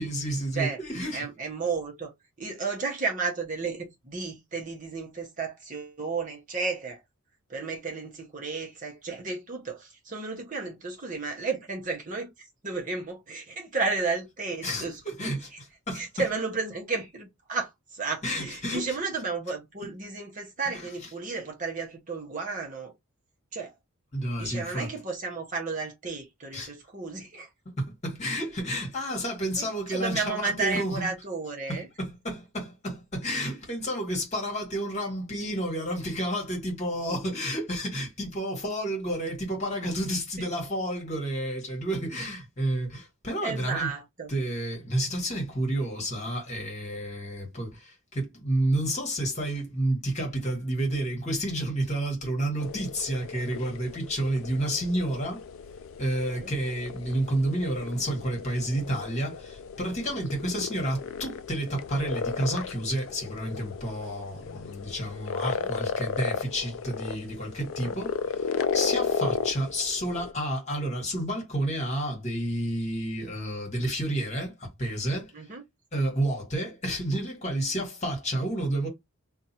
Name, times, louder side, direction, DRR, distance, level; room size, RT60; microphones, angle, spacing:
voice 1, 0.0-1.3 14.6-15.5 15.9-16.0 18.2-19.0 20.7-20.9 24.1-24.9 26.5-26.7 27.8-31.2 31.7-43.9 44.3-55.5 56.0-68.5 68.7-75.3 75.9-78.9, right 1 dB, 30° left, 1.4 m, -30 dB
voice 2, 1.1-2.1 2.4-7.0 7.5-15.3 15.9-22.9 23.5-23.7 24.4-27.5 29.6-31.9 40.4-40.6 43.4-44.3 56.4-56.5 65.6-65.7 67.8-68.0 75.3-75.6, right 4 dB, 35° right, 0.9 m, -33 dB
sound 1, 52.6-70.3, left 6 dB, 65° left, 0.3 m, -34 dB
2.6 x 2.4 x 4.1 m
head